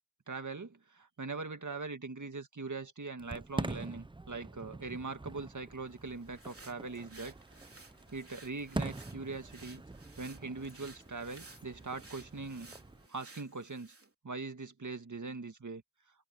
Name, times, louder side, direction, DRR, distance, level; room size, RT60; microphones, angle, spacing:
voice 1, 0.3-7.3 8.1-9.8 10.2-12.7 13.1-13.9 14.2-15.8, right 3 dB, 55° right, 1.9 m, -41 dB
Fireworks, 3.2-13.1, right 2 dB, 15° right, 0.6 m, -44 dB
Female speech woman speaking, 4.8-10.2 10.7-13.8, left 5 dB, 85° left, 6.3 m, -71 dB
sound 1, 5.9-14.1, right 2 dB, 40° right, 3.3 m, -56 dB
wide cardioid pair, 50°, 35 cm